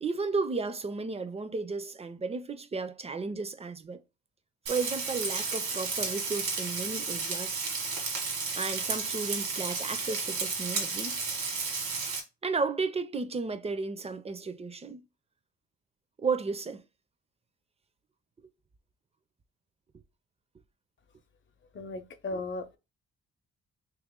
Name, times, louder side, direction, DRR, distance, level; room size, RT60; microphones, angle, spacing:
voice 1, 0.0-4.0 4.7-7.7 8.5-11.2 12.4-15.0 16.2-16.8 22.3-22.4, right 4 dB, 20° right, 0.4 m, -33 dB
Frying (food), 4.7-12.2, right 4 dB, 85° right, 1.5 m, -33 dB
voice 2, 21.7-22.8, left 2 dB, 40° left, 0.7 m, -36 dB
3.1 x 2.9 x 3.6 m
cardioid pair, 90°, 30 cm